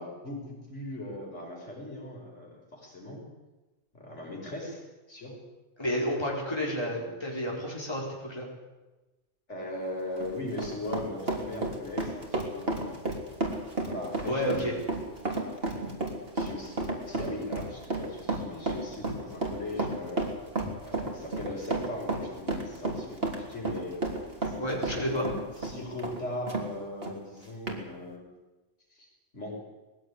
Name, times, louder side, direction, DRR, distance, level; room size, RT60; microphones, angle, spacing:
voice 1, 0.0-3.2 3.9-4.8 5.1-5.3 6.9-7.6 9.5-13.1 13.8-14.9 16.3-16.8 17.1-20.2 20.8-24.0 24.4-25.3 25.6-28.2 28.9-29.1 29.3-29.6, left 1 dB, 65° left, -1 dB, 5.9 m, -39 dB
voice 2, 5.8-8.5 14.2-14.7 24.6-25.3, equal, 20° left, -2 dB, 4.6 m, -30 dB
Run, 10.0-26.7 27.0-27.1 27.7-27.8, right 2 dB, 50° right, 3.8 m, -32 dB
21.0 x 16.5 x 10.0 m, 1.1 s
omnidirectional pair, 1.3 m